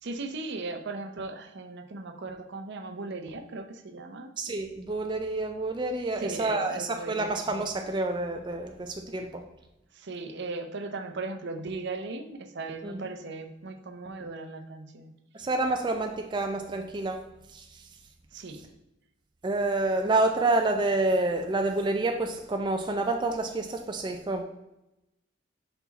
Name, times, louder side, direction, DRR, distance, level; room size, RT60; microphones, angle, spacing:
voice 1, 0.0-4.3 6.2-7.3 9.9-15.1 18.3-18.6, right 3 dB, 60° right, 7 dB, 0.6 m, -37 dB
voice 2, 4.4-9.4 12.8-13.1 15.3-17.2 17.5-17.9 19.4-24.4, right 2 dB, 25° right, 4 dB, 0.4 m, -28 dB
5.5 x 4.6 x 4.0 m, 0.93 s
head